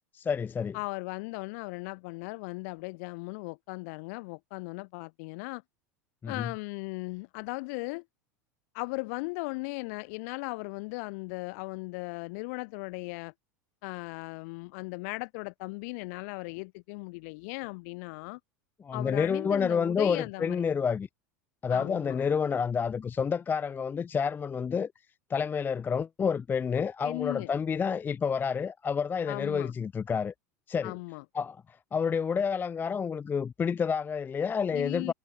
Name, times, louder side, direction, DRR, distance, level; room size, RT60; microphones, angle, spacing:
voice 1, 0.1-0.8 6.2-6.5 18.8-21.1 21.6-24.9 25.3-30.3 30.7-30.9 31.3-35.1, left 6 dB, 20° left, 0.4 m, -29 dB
voice 2, 0.7-5.6 6.3-8.0 8.7-13.3 13.8-18.4 18.9-20.6 21.7-22.2 27.0-27.5 29.3-29.7 30.8-31.2 34.7-35.1, left 29 dB, 60° left, 1.3 m, -37 dB
hypercardioid pair, 85°, 9 cm